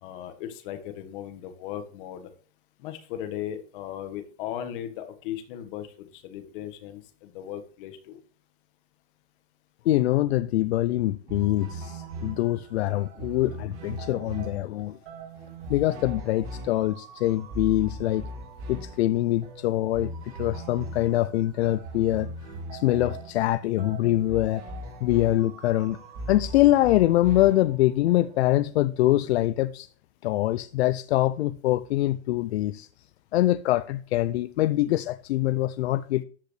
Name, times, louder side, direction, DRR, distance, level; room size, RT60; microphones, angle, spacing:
voice 1, 0.0-2.3 2.8-8.2, left 11 dB, 55° left, 1.6 m, -37 dB
voice 2, 9.9-15.0 15.7-18.3 18.7-22.3 22.7-24.6 25.0-26.0 26.3-29.9 30.2-32.9 33.3-36.2, left 15 dB, 75° left, 0.5 m, -24 dB
sound 1, 11.3-28.6, right 1 dB, 40° right, 3.1 m, -39 dB
13.5 x 5.0 x 3.2 m
supercardioid pair, 135°, 32 cm